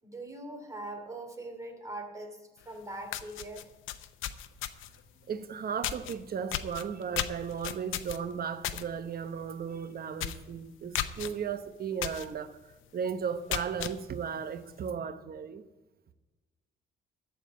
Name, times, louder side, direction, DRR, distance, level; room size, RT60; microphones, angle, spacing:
voice 1, 0.0-3.7, right 2 dB, 15° right, 2.8 m, -42 dB
sound 1, 2.7-2.8 3.1-5.0 5.8-6.1 6.5-8.8 9.2-9.4 9.7-9.8 10.2-10.5 10.9-11.3 12.0-12.3 12.7-12.8 13.3-13.9, left 12 dB, 90° left, 0.7 m, -34 dB
voice 2, 5.3-12.6 12.9-15.6, right 7 dB, 50° right, 0.9 m, -35 dB
14.0 x 4.9 x 9.2 m
cardioid pair, 90°, 20 cm